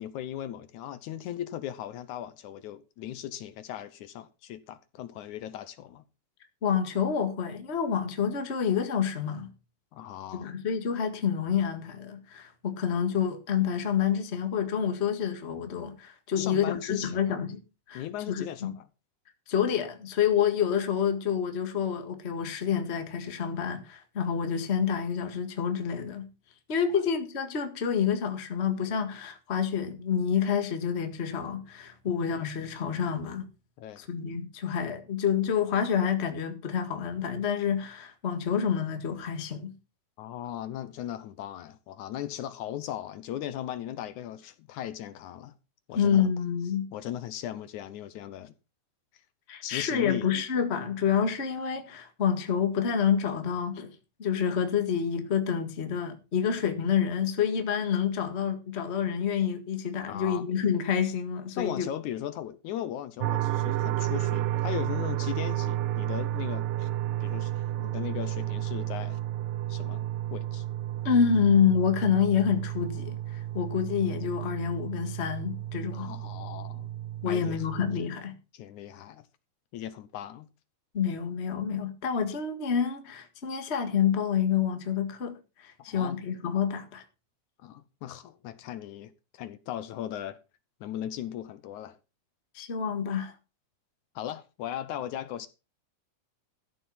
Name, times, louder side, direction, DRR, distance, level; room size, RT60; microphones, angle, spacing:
voice 1, 0.0-6.0 9.9-10.6 16.4-17.4 17.9-18.8 33.8-34.0 40.2-45.5 45.9-46.3 46.9-48.5 49.6-50.3 60.1-60.5 61.6-66.9 67.2-69.2 69.7-70.6 75.9-76.9 77.3-77.7 78.5-79.3 79.7-80.5 85.9-86.2 87.6-90.4 90.8-92.0 94.2-95.5, left 11 dB, 75° left, 2.2 m, -38 dB
voice 2, 6.6-9.5 10.3-17.6 17.9-18.7 19.5-26.3 26.7-33.5 34.0-39.7 45.9-46.9 49.5-53.9 54.2-61.9 71.0-76.1 77.2-78.3 80.9-87.0 92.5-93.3, left 7 dB, 30° left, 1.4 m, -28 dB
sound 1, 63.2-78.0, right 13 dB, 90° right, 2.4 m, -32 dB
14.0 x 7.2 x 5.6 m
omnidirectional pair, 3.7 m